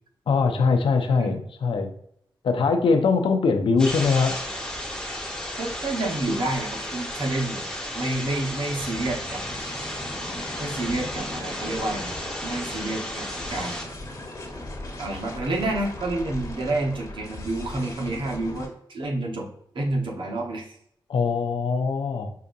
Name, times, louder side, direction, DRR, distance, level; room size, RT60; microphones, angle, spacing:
voice 1, 0.3-1.9 2.4-4.4 21.1-22.3, left 4 dB, 80° left, 5 dB, 0.6 m, -22 dB
sound 1, 3.8-13.8, left 1 dB, 5° left, 1.2 m, -34 dB
voice 2, 5.6-7.6 7.9-9.4 10.6-13.9 15.0-19.5 19.7-20.7, right 2 dB, 70° right, 0 dB, 1.0 m, -29 dB
sound 2, 8.7-18.7, left 1 dB, 40° left, 1.4 m, -38 dB
5.6 x 2.5 x 2.6 m, 0.69 s
cardioid pair, 55°, 9 cm